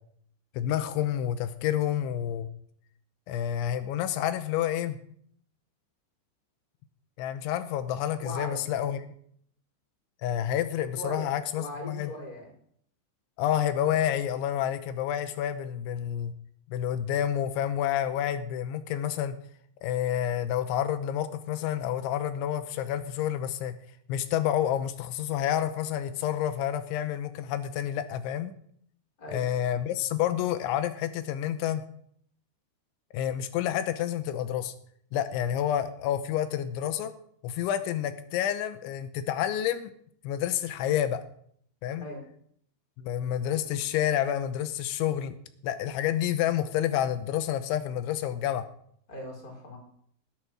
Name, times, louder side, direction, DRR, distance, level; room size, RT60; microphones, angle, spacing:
voice 1, 0.5-2.5 3.3-5.0 7.2-9.1 10.2-12.1 13.4-16.3 16.7-19.4 19.8-23.7 24.1-28.5 29.3-31.8 33.1-34.7 35.1-37.1 37.4-39.9 40.2-41.2 41.8-42.1 43.0-45.3 45.6-48.7, left 10 dB, 85° left, 10 dB, 3.3 m, -29 dB
voice 2, 8.2-8.6 11.0-12.5 29.2-29.4 42.0-42.2 49.1-49.8, left 1 dB, 20° left, 0 dB, 4.6 m, -39 dB
20.5 x 8.0 x 6.1 m, 0.65 s
omnidirectional pair, 5.2 m